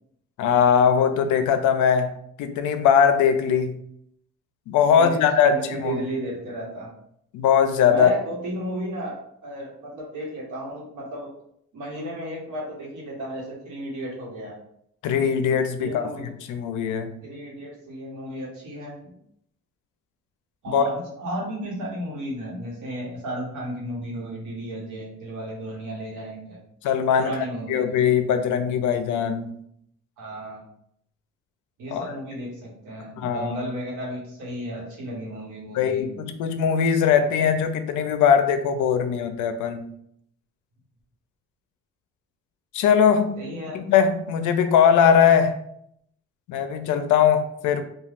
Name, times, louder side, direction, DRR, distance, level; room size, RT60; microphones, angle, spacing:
voice 1, 0.4-2.1 2.4-3.8 4.7-6.1 7.3-8.1 15.0-17.1 20.7-20.8 26.8-27.3 27.7-29.5 31.9-32.1 33.2-33.5 35.7-39.9 42.7-43.4 43.7-45.6 46.5-47.8, left 7 dB, 80° left, 8 dB, 0.4 m, -20 dB
voice 2, 4.9-6.9 7.9-11.3 11.7-14.6 15.7-16.3 17.2-19.2 20.6-26.6 27.2-28.0 30.2-30.6 31.8-36.0 43.4-43.8, right 1 dB, 75° right, -3 dB, 1.1 m, -33 dB
3.2 x 2.3 x 2.4 m, 0.71 s
cardioid pair, 90°, 30 cm